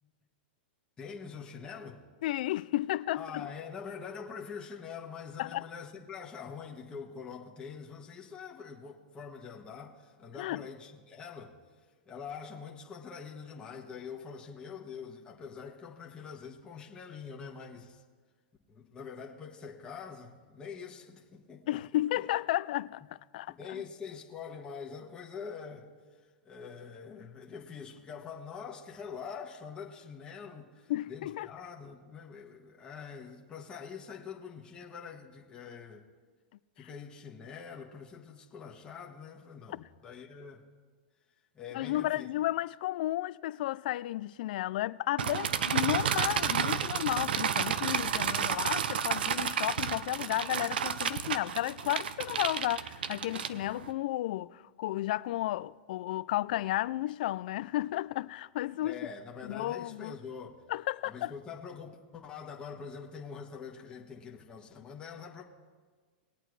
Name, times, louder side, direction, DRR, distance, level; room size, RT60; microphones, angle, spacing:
voice 1, 1.0-2.0 3.1-11.6 12.1-18.0 18.7-22.2 23.5-25.9 26.2-36.1 36.8-40.6 41.5-42.3 58.8-60.6 61.0-65.4, left 6 dB, 15° left, 1.4 m, -44 dB
voice 2, 2.2-3.5 5.4-5.6 10.4-10.7 21.7-23.8 30.9-31.5 39.7-39.9 41.7-59.0 59.4-60.1 60.7-61.3, left 15 dB, 60° left, 0.3 m, -33 dB
sound 1, 45.2-53.9, right 8 dB, 85° right, 0.6 m, -31 dB
20.5 x 8.8 x 3.2 m
hypercardioid pair, 140°, 5 cm